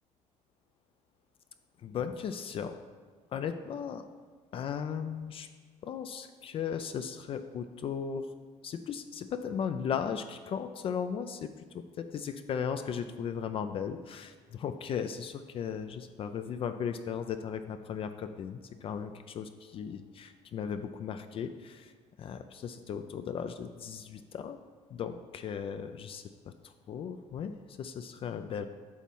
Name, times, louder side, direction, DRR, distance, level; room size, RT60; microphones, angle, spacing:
voice 1, 1.8-2.8 3.3-4.0 4.5-5.5 5.8-8.3 8.6-21.9 22.2-24.6 24.9-28.7, left 7 dB, 45° left, 9 dB, 0.4 m, -36 dB
8.3 x 3.1 x 5.4 m, 1.5 s
cardioid pair, 115°, 13 cm